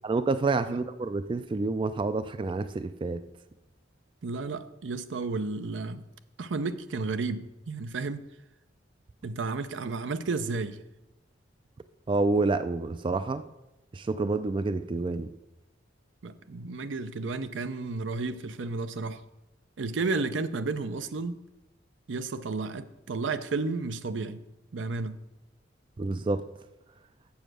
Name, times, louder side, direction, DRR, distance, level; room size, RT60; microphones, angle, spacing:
voice 1, 0.0-3.2 12.1-13.4 13.9-15.3 26.0-26.4, right 3 dB, 25° right, 0.3 m, -28 dB
voice 2, 4.2-6.0 6.4-8.3 9.2-10.8 16.2-19.2 19.8-21.4 22.1-24.4 24.7-25.2, right 3 dB, 75° right, 0.6 m, -32 dB
7.6 x 7.1 x 6.2 m
head